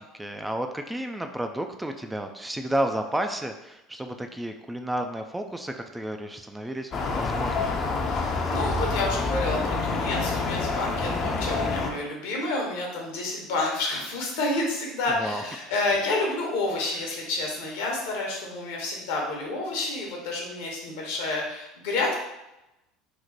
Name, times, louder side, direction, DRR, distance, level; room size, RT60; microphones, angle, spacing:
voice 1, 0.2-7.8 11.0-11.4 15.1-15.4, right 1 dB, 10° right, 6 dB, 0.3 m, -32 dB
sound 1, 6.9-11.9, left 3 dB, 45° left, 0.5 m, -27 dB
voice 2, 8.0-22.2, left 2 dB, 75° left, -1 dB, 0.9 m, -29 dB
3.0 x 2.1 x 3.9 m, 0.92 s
hypercardioid pair, 80°, 0 cm